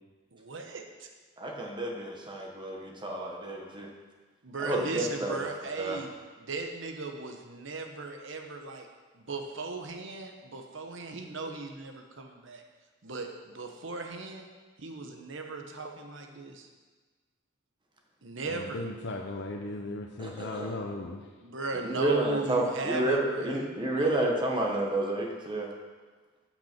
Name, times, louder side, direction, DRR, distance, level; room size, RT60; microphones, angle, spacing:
voice 1, 0.3-1.1 4.4-6.1 6.4-8.9 9.1-12.6 13.0-14.5 14.8-16.7 18.2-18.9 21.4-24.3, right 3 dB, 65° right, 3 dB, 1.1 m, -38 dB
voice 2, 1.4-3.9 4.6-5.5 5.8-6.0 20.2-20.8 21.8-25.7, right 1 dB, 25° right, 0 dB, 1.2 m, -30 dB
voice 3, 18.4-21.2, left 2 dB, 60° left, 1 dB, 0.7 m, -37 dB
13.5 x 5.9 x 4.5 m, 1.4 s
head